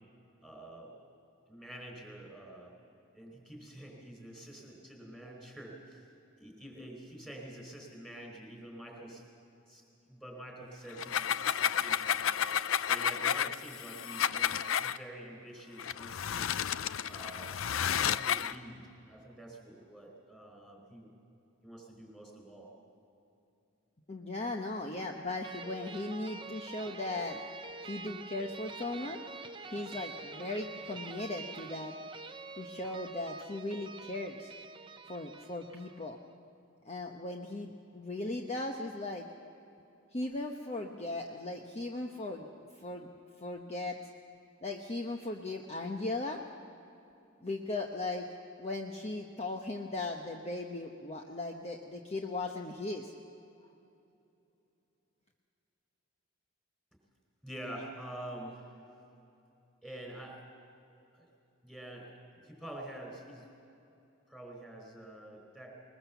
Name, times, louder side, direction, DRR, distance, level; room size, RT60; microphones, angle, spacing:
voice 1, 0.4-0.9 1.5-2.7 3.1-6.1 6.4-9.2 9.7-12.5 12.8-16.5 17.1-17.6 17.9-21.1 21.6-22.7 57.4-58.8 59.8-60.4 61.1-61.3 61.6-63.5 64.3-65.8, right 1 dB, 5° left, 1 dB, 4.1 m, -47 dB
sound 1, 10.9-15.0 15.8-18.6, left 9 dB, 75° left, 0.5 m, -31 dB
voice 2, 24.1-27.4 27.8-29.2 29.7-31.9 32.5-34.5 35.1-36.2 36.8-39.3 40.1-42.5 42.8-43.1 43.4-44.0 44.6-46.4 47.4-48.3 48.6-53.1, left 2 dB, 30° left, 2 dB, 0.9 m, -38 dB
sound 2, 25.4-36.2, right 3 dB, 25° right, 0.7 m, -46 dB
21.5 x 20.5 x 7.1 m, 2.8 s
head